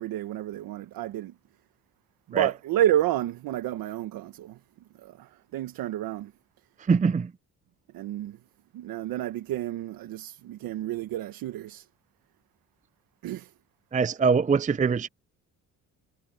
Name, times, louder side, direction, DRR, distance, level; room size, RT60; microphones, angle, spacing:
voice 1, 0.0-1.3 2.3-4.6 5.0-6.3 7.9-8.4 8.7-11.9 13.2-13.5, right 13 dB, 80° right, 1.3 m, -30 dB
voice 2, 6.9-7.3 13.9-15.1, right 5 dB, 20° right, 0.5 m, -23 dB
cardioid pair, 75°, 34 cm